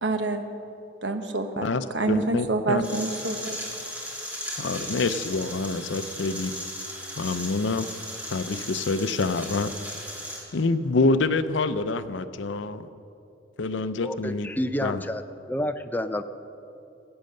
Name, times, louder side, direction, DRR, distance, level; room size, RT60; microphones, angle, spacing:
voice 1, 0.0-0.4 1.0-1.7 1.9-3.6, right 3 dB, 70° right, 7 dB, 1.1 m, -27 dB
voice 2, 1.6-2.9 4.6-6.5 7.2-7.9 8.3-9.7 10.5-12.9 13.6-14.6 14.8-15.0, left 3 dB, 85° left, 12 dB, 0.6 m, -26 dB
sound 1, 2.8-10.4, equal, 10° right, 2.6 m, -36 dB
voice 3, 14.0-15.2 15.5-16.2, left 1 dB, 10° left, 9 dB, 0.5 m, -29 dB
16.0 x 8.8 x 6.6 m, 2.8 s
head